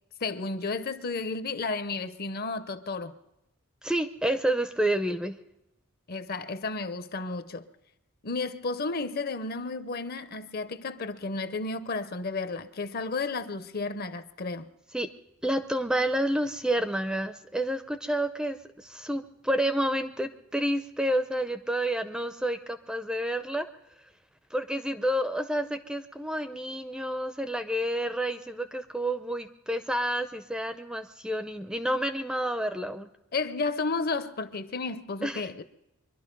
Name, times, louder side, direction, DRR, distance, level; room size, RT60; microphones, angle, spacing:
voice 1, 0.2-3.1 6.1-7.7 8.2-14.7 33.3-35.6, left 3 dB, 45° left, 0.7 m, -32 dB
voice 2, 3.8-5.4 14.9-15.1 15.4-23.7 24.5-33.1 35.2-35.5, right 1 dB, 5° right, 0.5 m, -29 dB
24.0 x 11.5 x 5.3 m
head